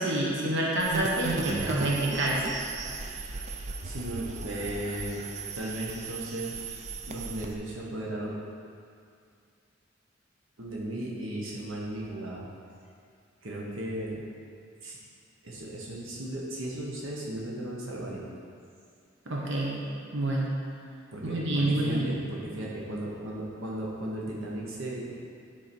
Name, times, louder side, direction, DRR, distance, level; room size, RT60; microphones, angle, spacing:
voice 1, 0.0-2.5 19.3-19.8 20.1-20.5 21.2-22.2, right 1 dB, 60° right, -4 dB, 1.3 m, -28 dB
sound 1, 0.8-7.5, right 4 dB, 35° right, 0.5 m, -36 dB
voice 2, 3.2-5.2 5.6-6.6 7.1-8.4 10.6-12.5 13.4-14.2 14.8-15.0 15.4-18.3 21.1-25.1, right 1 dB, 85° right, -4 dB, 1.2 m, -36 dB
10.0 x 4.6 x 4.5 m, 2.4 s
head